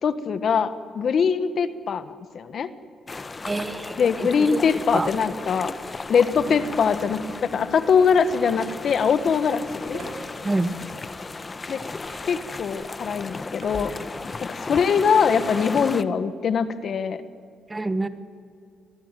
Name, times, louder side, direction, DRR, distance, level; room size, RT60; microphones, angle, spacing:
voice 1, 0.0-2.7 4.0-5.7 6.1-10.0 11.7-11.8 12.3-13.9 14.4-17.2, left 6 dB, 55° left, 13 dB, 1.4 m, -22 dB
sound 1, 3.1-16.0, left 3 dB, 30° left, 1.1 m, -35 dB
voice 2, 3.5-4.0 4.4-4.6 4.9-5.1 10.4-10.7 17.7-18.1, right 2 dB, 20° right, 12 dB, 1.5 m, -26 dB
Bass guitar, 6.3-9.9, right 4 dB, 55° right, 5.5 m, -42 dB
sound 2, 9.9-10.2 12.0-12.5 13.6-13.9 14.3-14.6 15.4-15.5, right 5 dB, 75° right, 5.8 m, -43 dB
25.0 x 19.0 x 9.2 m, 2.3 s
cardioid pair, 90°, 0 cm